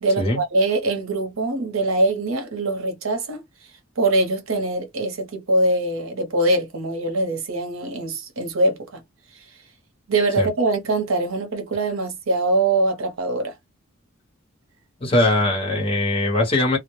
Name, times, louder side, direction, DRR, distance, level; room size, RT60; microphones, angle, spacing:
voice 1, 0.0-3.4 4.0-9.0 9.3-9.4 10.1-13.5, right 2 dB, 75° right, 0.8 m, -23 dB
voice 2, 15.0-16.8, left 1 dB, 25° left, 0.9 m, -20 dB
2.1 x 2.0 x 3.0 m
head